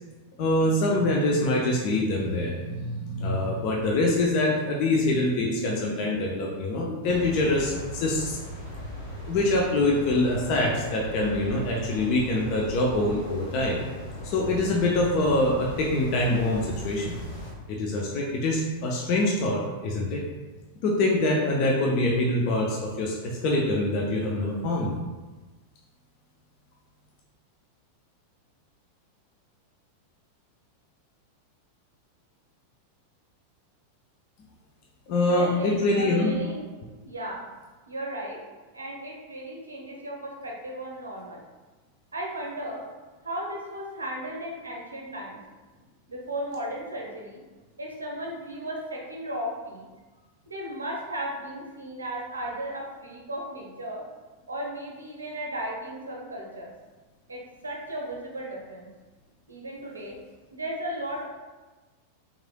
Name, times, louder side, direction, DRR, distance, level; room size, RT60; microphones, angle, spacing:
voice 1, 0.4-8.4 9.3-13.8 14.2-17.1 17.7-20.2 20.8-24.9 35.1-36.3, left 2 dB, 45° left, -2 dB, 0.5 m, -25 dB
sound 1, 7.0-17.5, equal, 75° left, 1.1 m, -38 dB
voice 2, 35.2-36.6 37.0-37.5 37.9-38.4 38.7-41.4 42.1-42.8 43.2-45.4 46.1-47.4 47.8-49.9 50.5-54.0 54.5-56.7 57.3-58.9 59.5-60.2 60.5-61.2, right 1 dB, 75° right, -1 dB, 0.6 m, -35 dB
3.6 x 3.2 x 2.2 m, 1.3 s
figure-of-eight pair, 90°, 0 cm